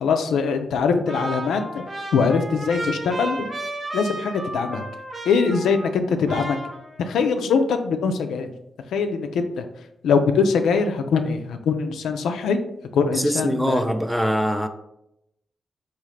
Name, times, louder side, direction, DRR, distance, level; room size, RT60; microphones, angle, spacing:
voice 1, 0.0-1.8 2.1-3.5 3.9-4.8 5.3-6.6 7.1-8.5 8.9-9.6 10.0-12.6 12.9-13.8, left 5 dB, 80° left, 0.3 m, -22 dB
Trumpet, 1.1-6.0 6.3-7.3, right 1 dB, 35° right, 0.8 m, -33 dB
voice 2, 13.1-14.7, equal, ahead, 0.4 m, -22 dB
3.6 x 2.4 x 3.2 m
supercardioid pair, 40°, 0 cm